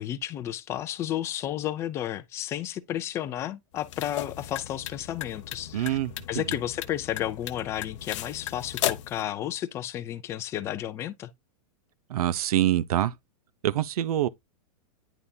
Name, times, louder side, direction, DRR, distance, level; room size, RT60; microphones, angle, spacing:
voice 1, 0.0-6.0 6.3-11.3, left 12 dB, 15° left, 0.4 m, -32 dB
sound 1, 3.7-9.2, left 13 dB, 50° left, 0.6 m, -36 dB
voice 2, 5.7-6.4 12.1-13.1 13.6-14.3, right 12 dB, 75° right, 0.7 m, -25 dB
9.9 x 3.5 x 2.7 m
supercardioid pair, 160°, 19 cm